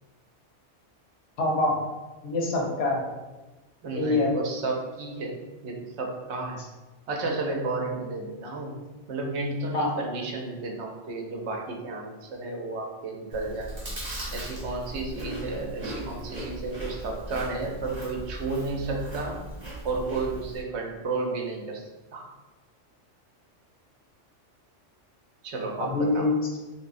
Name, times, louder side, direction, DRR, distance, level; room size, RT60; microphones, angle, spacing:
voice 1, 1.4-1.8 2.2-3.0 3.9-4.3 9.7-9.9 25.8-26.3, left 2 dB, 80° left, 0 dB, 1.0 m, -25 dB
voice 2, 3.8-5.4 5.6-6.6 7.1-13.7 14.3-19.4 19.8-22.3 25.4-26.3, right 3 dB, 70° right, 1 dB, 0.9 m, -32 dB
Chewing mastication, 13.3-20.6, right 1 dB, 35° right, 1.0 m, -38 dB
3.2 x 3.1 x 2.5 m, 1.1 s
omnidirectional pair, 1.2 m